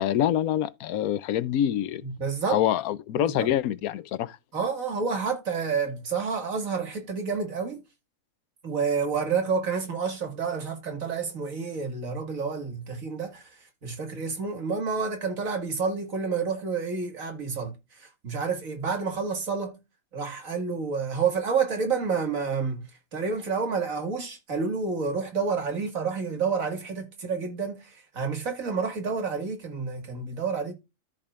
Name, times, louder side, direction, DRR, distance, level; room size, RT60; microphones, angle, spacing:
voice 1, 0.0-2.0 2.5-4.4, left 11 dB, 85° left, 1.1 m, -26 dB
voice 2, 2.0-2.6 3.1-3.5 4.5-7.8 8.6-13.5 13.8-19.8 20.1-22.8 23.1-30.7, right 5 dB, 65° right, 2.4 m, -29 dB
13.5 x 5.0 x 2.4 m
omnidirectional pair, 1.5 m